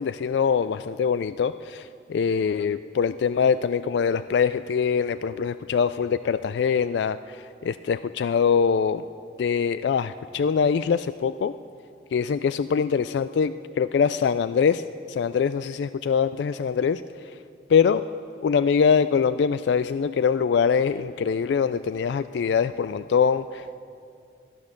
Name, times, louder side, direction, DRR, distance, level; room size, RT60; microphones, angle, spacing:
voice 1, 0.0-9.0 9.4-11.5 12.1-14.8 15.1-17.0 17.7-18.0 18.4-23.8, left 6 dB, 75° left, 14 dB, 0.3 m, -23 dB
17.0 x 12.0 x 6.5 m, 2.5 s
head